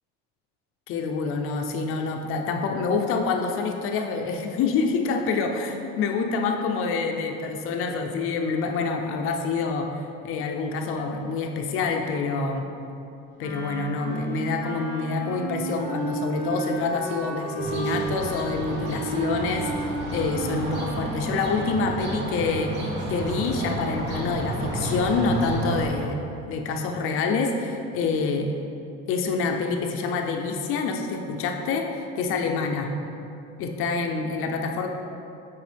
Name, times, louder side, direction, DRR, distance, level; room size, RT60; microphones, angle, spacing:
voice 1, 0.9-12.7 13.4-22.7 23.1-28.5 29.1-32.9 33.6-34.9, left 4 dB, 45° left, 3 dB, 0.6 m, -27 dB
Wind instrument woodwind instrument, 13.4-22.4, right 2 dB, 10° right, 1.5 m, -34 dB
sound 1, 17.6-25.9, right 2 dB, 35° right, 1.0 m, -31 dB
8.1 x 4.7 x 3.4 m, 2.7 s
cardioid pair, 160°, 30 cm